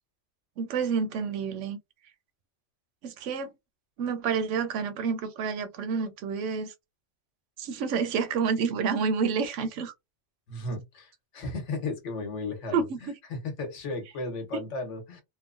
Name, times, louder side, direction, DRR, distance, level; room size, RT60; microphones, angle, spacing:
voice 1, 0.6-1.8 3.0-3.5 4.0-6.7 7.6-9.9 12.7-13.1, right 6 dB, 90° right, 0.9 m, -29 dB
voice 2, 10.5-15.2, left 3 dB, 80° left, 1.2 m, -35 dB
3.0 x 2.0 x 2.5 m
omnidirectional pair, 1.2 m